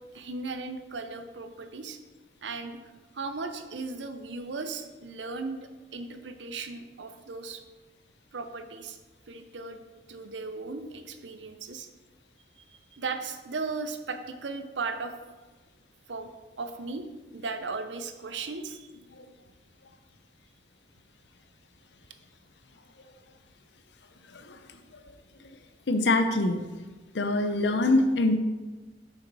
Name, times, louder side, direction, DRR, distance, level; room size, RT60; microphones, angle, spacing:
voice 1, 0.1-2.0 2.4-2.8 3.1-7.6 8.3-9.0 9.3-9.8 10.1-11.9 12.6-12.7 12.9-15.2 16.1-16.3 16.6-17.1 17.3-18.9, right 4 dB, 90° right, 7 dB, 0.7 m, -36 dB
voice 2, 25.9-26.7 27.1-28.4, left 2 dB, 75° left, 8 dB, 0.6 m, -25 dB
6.9 x 5.7 x 4.1 m, 1.3 s
head